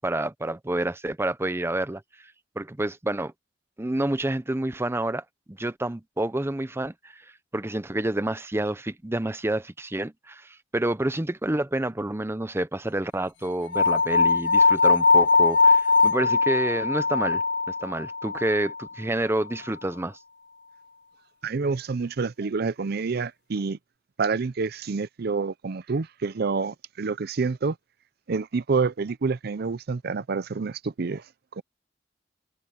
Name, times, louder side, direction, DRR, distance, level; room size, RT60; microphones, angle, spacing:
voice 1, 0.0-2.0 2.6-3.3 3.8-7.2 7.5-17.4 17.8-20.2, right 1 dB, 15° right, 0.7 m, -28 dB
sound 1, 13.7-18.8, left 4 dB, 75° left, 0.9 m, -21 dB
voice 2, 21.4-23.8 24.2-27.7 28.3-31.2 31.6-31.7, right 4 dB, 60° right, 0.5 m, -28 dB
head